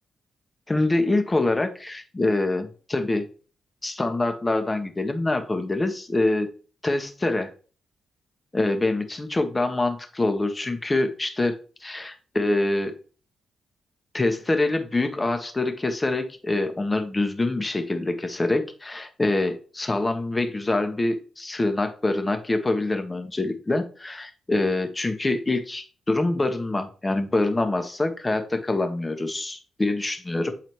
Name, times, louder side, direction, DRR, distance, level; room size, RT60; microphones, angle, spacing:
voice 1, 0.7-3.3 3.8-6.5 6.8-7.5 8.5-12.9 14.1-30.5, left 2 dB, 25° left, 7 dB, 1.2 m, -25 dB
7.8 x 4.0 x 3.1 m, 0.38 s
hypercardioid pair, 40°, 0 cm